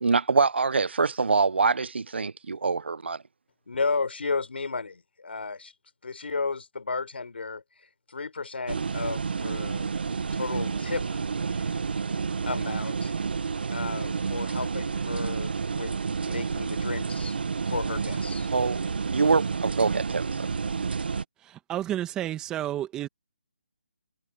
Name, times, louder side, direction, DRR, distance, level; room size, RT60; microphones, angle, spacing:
voice 1, 0.0-3.2 18.5-20.4, right 4 dB, 80° right, 0.6 m, -25 dB
voice 2, 3.7-5.7 6.0-7.6 8.1-9.9 10.3-11.2 11.5-11.7 12.4-13.1 13.7-15.9 16.2-17.4 17.7-18.5, left 4 dB, 75° left, 4.4 m, -33 dB
sound 1, 8.7-21.2, right 5 dB, 65° right, 1.1 m, -30 dB
voice 3, 21.4-23.1, right 12 dB, 10° right, 1.5 m, -31 dB
hypercardioid pair, 160°, 6 cm